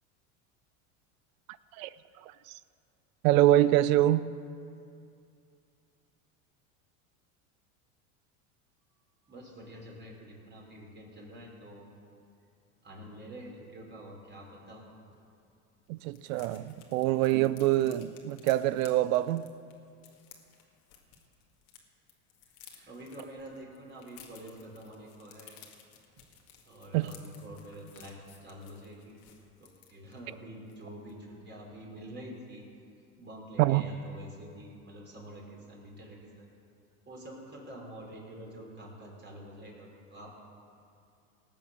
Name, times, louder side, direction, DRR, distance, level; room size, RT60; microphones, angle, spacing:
voice 1, 3.2-4.3 15.9-19.5 26.9-27.1 33.6-33.9, right 14 dB, 70° right, 0.6 m, -25 dB
voice 2, 9.3-12.0 12.8-14.8 22.9-25.6 26.7-29.2 29.6-32.7 33.2-36.5 37.1-40.3, equal, 25° right, 3.7 m, -47 dB
sound 1, 15.1-15.2 15.5-15.6 15.8-21.8 22.1-30.3 30.7-30.8 31.1-31.3, left 8 dB, 80° left, 2.0 m, -56 dB
18.5 x 7.2 x 6.6 m
supercardioid pair, 105°, 41 cm